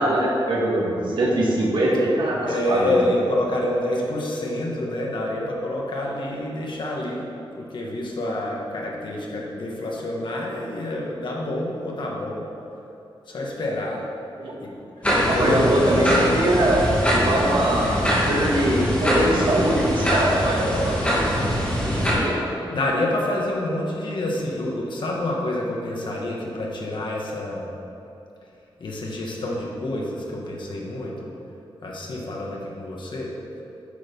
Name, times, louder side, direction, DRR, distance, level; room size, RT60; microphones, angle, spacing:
voice 1, 0.0-3.0 14.4-14.5 15.2-21.0 21.8-22.4, right 1 dB, 65° right, -5 dB, 1.9 m, -22 dB
voice 2, 2.5-7.3 7.6-12.5 13.3-14.0 14.6-14.7 15.2-15.7 22.1-22.2 22.7-27.7 28.8-31.3 31.8-33.3, left 1 dB, 60° left, -2 dB, 1.7 m, -27 dB
sound 1, 15.0-22.1, equal, 15° left, 2.5 m, -23 dB
10.0 x 6.6 x 5.4 m, 2.9 s
wide cardioid pair, 150°, 9 cm